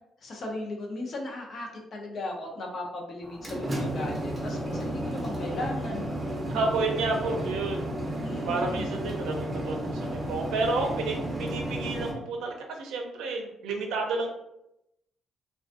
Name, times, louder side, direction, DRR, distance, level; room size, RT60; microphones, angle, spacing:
voice 1, 0.2-6.1 8.2-8.9, left 2 dB, 55° left, 0 dB, 0.6 m, -36 dB
sound 1, 3.2-12.1, right 1 dB, 20° right, 0.6 m, -32 dB
voice 2, 6.5-8.0 8.5-14.3, right 3 dB, 90° right, 2 dB, 0.5 m, -30 dB
2.4 x 2.3 x 2.4 m, 0.84 s
cardioid pair, 90°, 0 cm